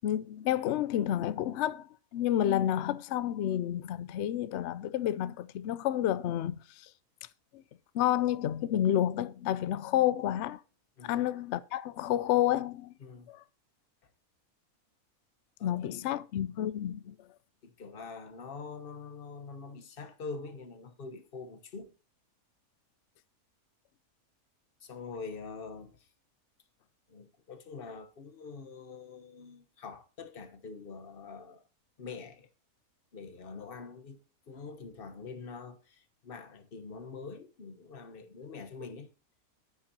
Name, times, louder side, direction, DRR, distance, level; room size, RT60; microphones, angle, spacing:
voice 1, 0.0-6.9 7.5-7.6 7.9-10.6 11.0-12.9 13.3-13.4 15.6-17.2, left 12 dB, 65° left, 0.7 m, -30 dB
voice 2, 13.0-13.3 15.6-16.2 17.6-21.9 24.8-26.1 27.1-31.6 32.0-32.5 33.1-34.2 34.5-39.1, left 4 dB, 45° left, 1.1 m, -45 dB
9.9 x 8.8 x 2.8 m
omnidirectional pair, 1.5 m